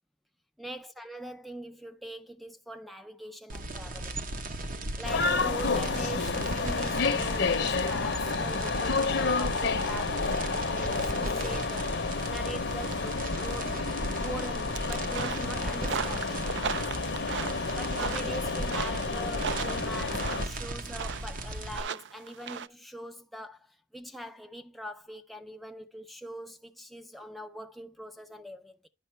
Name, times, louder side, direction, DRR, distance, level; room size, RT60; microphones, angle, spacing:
voice 1, 0.6-4.2 5.0-11.9 12.3-13.8 14.2-16.4 17.8-28.9, equal, ahead, 0.4 m, -42 dB
sound 1, 3.5-21.8, right 1 dB, 45° right, 0.8 m, -37 dB
sound 2, 5.0-20.5, left 4 dB, 60° left, 0.7 m, -30 dB
sound 3, 14.7-22.7, right 7 dB, 65° right, 0.4 m, -37 dB
10.0 x 5.2 x 3.3 m
head